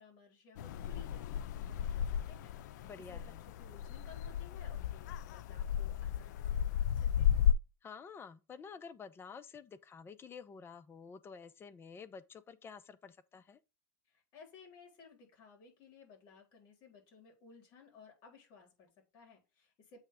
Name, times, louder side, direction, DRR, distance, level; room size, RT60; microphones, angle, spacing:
voice 1, 0.0-7.5 14.1-20.0, left 5 dB, 55° left, 4.0 m, -59 dB
sound 1, 0.6-7.5, left 9 dB, 85° left, 0.4 m, -34 dB
voice 2, 2.8-3.4 7.8-13.6, left 5 dB, 25° left, 0.7 m, -50 dB
8.0 x 3.3 x 4.8 m
supercardioid pair, 120°, 9 cm